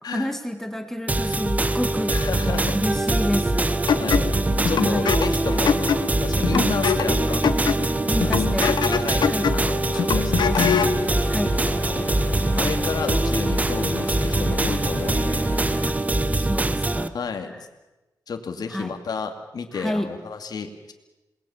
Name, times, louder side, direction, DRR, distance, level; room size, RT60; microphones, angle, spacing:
voice 1, 0.0-2.1 2.7-3.7 4.8-5.1 6.5-6.8 8.1-8.8 9.3-9.5 11.3-11.6 15.9-16.0 16.4-17.1 18.7-18.9 19.7-20.1, equal, 5° left, 7 dB, 2.0 m, -28 dB
sound 1, 1.1-17.1, right 2 dB, 20° right, 1.1 m, -23 dB
voice 2, 2.1-2.8 4.0-4.3 4.7-7.4 8.2-10.6 11.6-12.1 12.6-15.5 17.1-17.7 18.3-20.9, left 5 dB, 65° left, 5 dB, 2.4 m, -31 dB
sound 2, 3.9-11.0, left 7 dB, 85° left, 1.2 m, -24 dB
sound 3, 10.3-15.9, left 3 dB, 25° left, 1.5 m, -34 dB
27.5 x 20.5 x 7.2 m, 1.0 s
wide cardioid pair, 105°, 7 cm